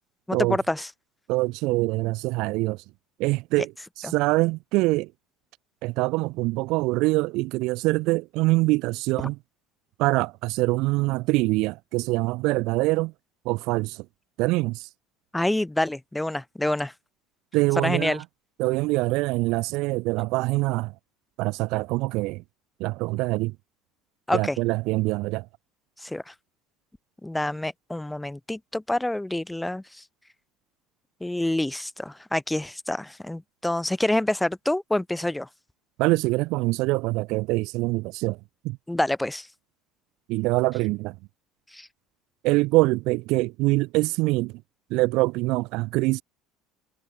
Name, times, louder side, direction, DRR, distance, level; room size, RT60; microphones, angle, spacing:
voice 1, 0.3-0.9 4.0-4.1 15.3-16.9 17.8-18.2 24.3-24.6 26.0-26.3 27.2-29.8 31.2-35.5 38.9-39.5 41.7-41.9, left 1 dB, 5° left, 4.1 m, -27 dB
voice 2, 1.3-2.8 3.2-3.7 4.0-5.1 5.8-9.4 10.0-13.1 13.4-14.0 14.4-14.9 17.5-18.2 18.6-20.9 21.4-22.4 22.8-23.5 24.3-25.5 36.0-38.4 38.6-38.8 40.3-41.2 42.4-44.6 44.9-46.2, right 22 dB, 60° right, 1.1 m, -24 dB
cardioid pair, 160°, 0 cm